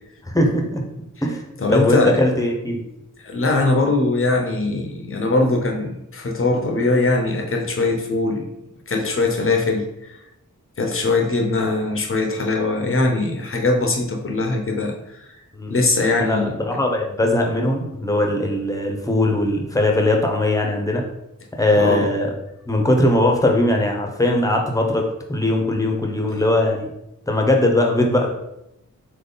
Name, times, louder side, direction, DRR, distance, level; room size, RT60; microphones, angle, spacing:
voice 1, 0.2-0.8 1.2-1.4 1.7-2.8 15.5-15.8 16.2-21.0 21.6-22.3 22.7-26.9 27.3-28.3, left 1 dB, 10° left, 1 dB, 0.9 m, -20 dB
voice 2, 1.6-2.2 3.2-8.5 8.9-10.2 10.8-15.3 15.7-16.6 21.7-22.1, left 2 dB, 40° left, 2 dB, 0.8 m, -21 dB
3.9 x 3.0 x 3.9 m, 0.83 s
wide cardioid pair, 65°, 32 cm